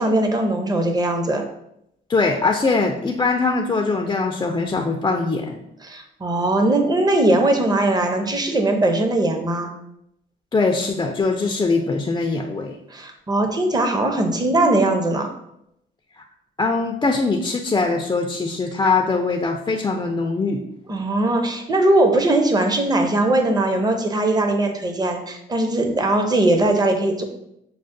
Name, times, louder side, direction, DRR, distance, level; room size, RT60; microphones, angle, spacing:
voice 1, 0.0-1.4 5.8-9.7 12.9-15.3 20.9-27.2, right 2 dB, 20° right, 4 dB, 0.6 m, -20 dB
voice 2, 2.1-5.6 10.5-12.8 16.2-16.3 16.6-20.6, left 3 dB, 20° left, 2 dB, 0.4 m, -22 dB
6.1 x 2.0 x 2.6 m, 0.79 s
cardioid pair, 90°, 20 cm